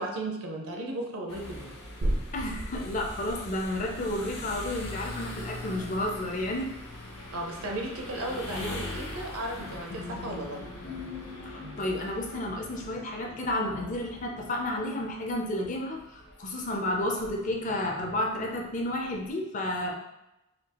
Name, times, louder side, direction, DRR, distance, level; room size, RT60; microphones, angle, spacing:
voice 1, 0.0-1.7 7.3-10.6 11.6-11.8, right 1 dB, 85° right, 1 dB, 0.7 m, -35 dB
sound 1, 1.3-19.3, left 1 dB, 90° left, 0.8 m, -43 dB
sound 2, 2.0-9.3 9.6-9.7, right 1 dB, 40° right, 0.4 m, -38 dB
voice 2, 2.3-6.7 11.5-19.9, left 1 dB, 35° left, 0 dB, 0.5 m, -31 dB
sound 3, 9.5-14.6, left 4 dB, 55° left, 0.9 m, -45 dB
4.3 x 2.3 x 2.9 m, 0.91 s
head